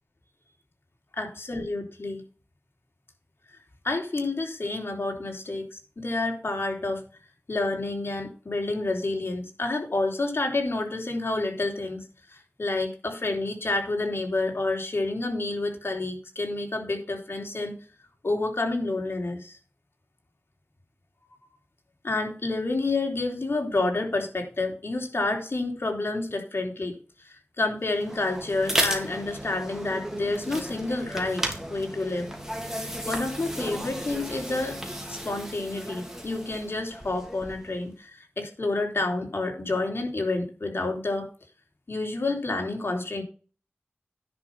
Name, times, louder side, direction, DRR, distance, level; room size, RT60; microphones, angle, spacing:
voice 1, 1.1-2.2 3.8-7.0 7.5-17.7 18.2-19.6 22.0-31.4 31.7-32.3 33.0-34.8 35.1-41.3 41.9-43.2, left 2 dB, 60° left, 2 dB, 3.4 m, -29 dB
sound 1, 27.9-37.7, right 1 dB, 10° right, 3.1 m, -34 dB
10.5 x 5.5 x 5.8 m, 0.37 s
wide cardioid pair, 55°, 4 cm